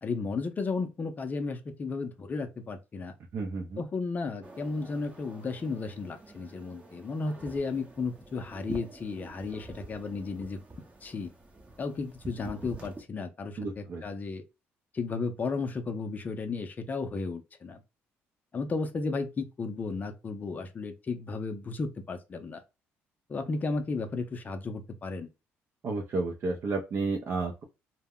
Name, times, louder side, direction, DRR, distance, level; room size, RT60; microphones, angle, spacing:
voice 1, 0.0-3.1 3.8-10.6 11.0-11.3 11.8-14.4 14.9-17.8 18.5-22.6 23.3-25.3, left 4 dB, 35° left, 0.5 m, -34 dB
voice 2, 3.3-3.8 13.6-14.0 25.8-27.6, right 3 dB, 50° right, 0.5 m, -31 dB
sound 1, 4.4-13.0, right 2 dB, 25° right, 0.8 m, -47 dB
2.1 x 2.0 x 3.5 m
cardioid pair, 90°, 5 cm